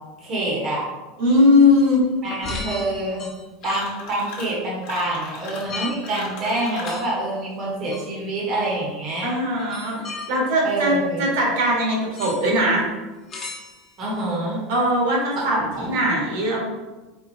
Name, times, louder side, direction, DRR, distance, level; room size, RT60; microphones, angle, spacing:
voice 1, 0.2-0.8 2.2-3.3 3.6-9.3 10.6-11.3 14.0-14.6 15.4-15.9, right 1 dB, 35° right, -5 dB, 1.1 m, -26 dB
voice 2, 1.2-2.0 9.2-10.9 11.2-12.8 14.7-16.6, left 1 dB, 70° right, -2 dB, 1.5 m, -20 dB
sound 1, 2.3-4.1 5.7-6.1 6.5-7.1 7.9-8.1 8.5-8.6 9.6-10.3 12.1-12.4 13.3-14.0, left 3 dB, 25° left, 1.1 m, -34 dB
sound 2, 3.6-4.6 4.8-7.1, left 4 dB, 70° left, 1.1 m, -38 dB
4.4 x 3.7 x 2.7 m, 1.2 s
supercardioid pair, 160°, 0 cm